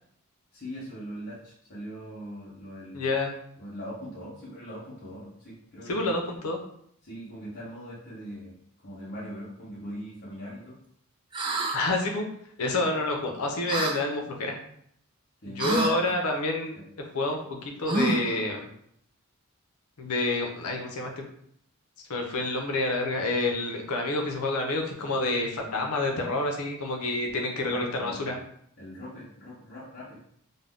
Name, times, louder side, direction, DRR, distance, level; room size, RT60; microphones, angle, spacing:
voice 1, 0.5-3.1 3.6-6.1 7.0-8.6 8.8-10.8 15.4-16.1 16.7-16.8 27.7-28.4 28.8-30.2, equal, 45° left, -9 dB, 0.7 m, -41 dB
voice 2, 2.9-3.3 5.9-6.6 11.7-12.3 12.6-14.5 15.5-16.8 17.1-18.7 20.0-21.2 22.1-28.3, left 2 dB, 85° left, 2 dB, 0.6 m, -28 dB
sound 1, 11.3-11.8 13.7-14.0 15.6-15.9 17.9-18.4, right 3 dB, 20° right, 0.3 m, -27 dB
2.5 x 2.1 x 3.4 m, 0.68 s
head